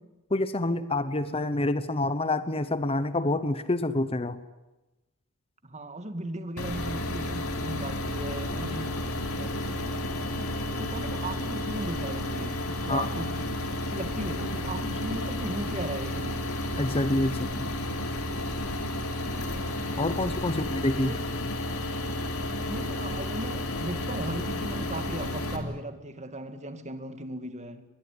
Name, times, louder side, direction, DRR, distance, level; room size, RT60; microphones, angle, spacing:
voice 1, 0.3-4.4 12.9-13.1 16.8-17.7 20.0-21.1, left 2 dB, 25° left, 12 dB, 1.0 m, -27 dB
voice 2, 5.6-8.9 9.4-16.4 20.5-21.2 22.7-27.8, right 1 dB, 30° right, 9 dB, 2.3 m, -37 dB
sound 1, 6.6-25.6, left 1 dB, 85° left, 4.0 m, -32 dB
24.0 x 20.5 x 9.9 m, 1.0 s
head